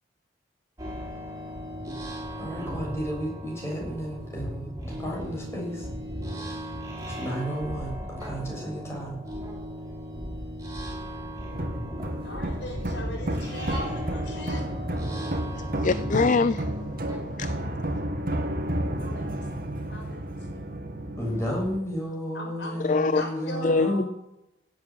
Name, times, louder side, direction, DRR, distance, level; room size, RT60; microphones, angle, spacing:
sound 1, 0.8-17.2, equal, 15° right, 5.5 m, -36 dB
voice 1, 2.4-5.9 6.3-6.7 7.0-9.2 21.2-24.0, equal, 15° left, 7.3 m, -33 dB
sound 2, 11.5-21.8, right 1 dB, 55° right, 2.2 m, -32 dB
voice 2, 12.2-14.6 19.0-19.3 19.9-20.2 22.3-22.8 23.1-24.0, left 1 dB, 75° left, 5.1 m, -38 dB
voice 3, 15.6-16.7 17.4-17.5 22.8-23.2 23.6-24.0, left 4 dB, 45° left, 0.5 m, -23 dB
16.5 x 8.3 x 9.3 m
head